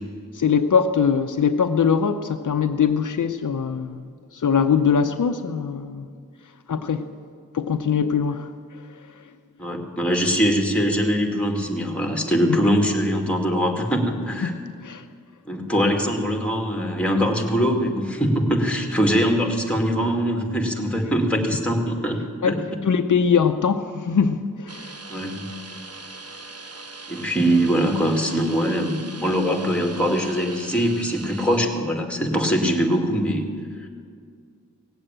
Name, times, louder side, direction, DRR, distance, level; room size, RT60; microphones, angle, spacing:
voice 1, 0.3-6.1 6.7-7.1 7.5-8.5 14.4-15.0 22.4-22.6 22.9-24.9, left 6 dB, 70° left, 8 dB, 0.7 m, -22 dB
voice 2, 9.6-14.5 15.5-22.6 25.1-25.5 27.1-33.5 33.8-33.9, equal, 5° left, 2 dB, 2.3 m, -22 dB
sound 1, 24.7-31.6, right 3 dB, 50° right, 1.3 m, -40 dB
18.0 x 8.0 x 8.8 m, 2.1 s
wide cardioid pair, 80°, 32 cm